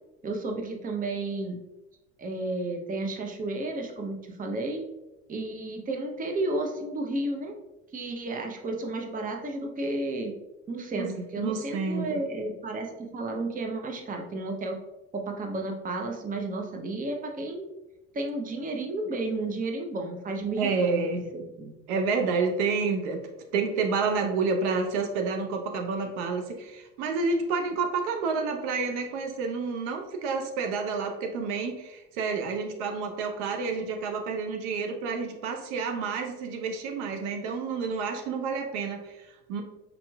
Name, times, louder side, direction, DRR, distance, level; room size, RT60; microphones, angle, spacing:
voice 1, 0.2-1.6 2.2-4.9 5.3-7.5 7.9-10.3 10.7-14.8 15.1-17.7 18.1-21.7, right 2 dB, 20° right, 3 dB, 0.7 m, -32 dB
voice 2, 11.0-12.2 20.6-21.2 21.9-23.2 23.5-39.6, right 4 dB, 70° right, 4 dB, 0.7 m, -29 dB
5.2 x 3.0 x 2.3 m, 0.97 s
hypercardioid pair, 80°, 36 cm